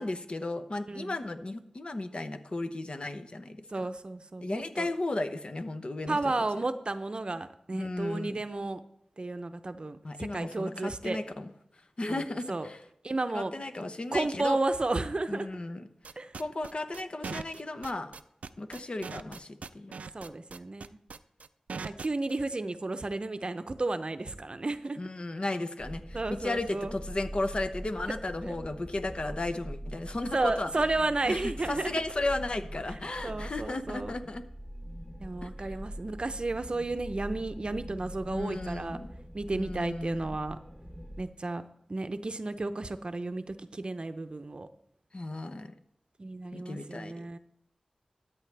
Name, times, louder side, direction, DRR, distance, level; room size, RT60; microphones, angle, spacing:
voice 1, 0.0-3.9 4.4-6.2 7.7-8.4 10.0-11.5 12.0-12.8 13.3-14.6 15.3-15.9 16.3-18.2 18.6-20.0 25.0-30.7 31.3-34.4 35.4-35.7 38.3-39.1 39.5-40.3 45.1-45.8 46.5-47.3, left 2 dB, 50° left, 9 dB, 0.8 m, -35 dB
voice 2, 3.7-4.9 6.1-8.8 9.2-11.2 12.1-12.2 12.5-12.7 13.0-13.5 14.1-15.6 16.2-16.3 20.1-21.0 21.8-25.0 26.1-26.9 28.4-28.6 30.3-31.9 32.9-33.0 33.2-34.1 35.2-39.0 39.3-40.6 41.2-41.6 41.9-44.7 46.2-47.4, right 2 dB, 45° right, 11 dB, 0.6 m, -32 dB
sound 1, 16.0-22.4, right 5 dB, 80° right, 0.3 m, -40 dB
sound 2, 25.8-41.2, equal, 20° left, 2.9 m, -43 dB
13.5 x 8.4 x 3.4 m, 0.74 s
wide cardioid pair, 55°, 2 cm